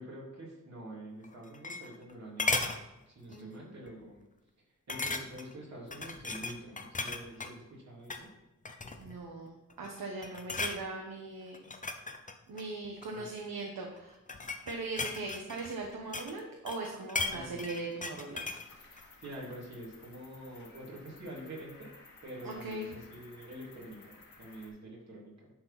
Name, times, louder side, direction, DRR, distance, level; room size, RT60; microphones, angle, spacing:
voice 1, 0.0-2.7 3.0-4.3 4.6-8.3 13.1-13.3 17.3-17.7 19.2-21.9 22.2-25.5, right 1 dB, 50° right, -4 dB, 3.4 m, -46 dB
sound 1, 1.2-2.1 2.4-2.8 3.3-3.5 3.9-4.0 4.9-5.5 5.9-7.5 8.0-8.3 8.6-9.2 9.7-10.0 10.2-10.8 11.5-13.2 14.0-16.4 16.7-18.7 19.0-19.1, left 3 dB, 25° left, 0.7 m, -36 dB
voice 2, 3.3-3.8 8.9-11.6 12.5-14.2 14.7-18.4 22.4-22.9, right 3 dB, 90° right, 1 dB, 1.3 m, -40 dB
Cricket, 18.3-24.7, left 3 dB, 85° left, 2.0 m, -56 dB
11.0 x 4.5 x 5.8 m, 0.99 s
wide cardioid pair, 145°, 33 cm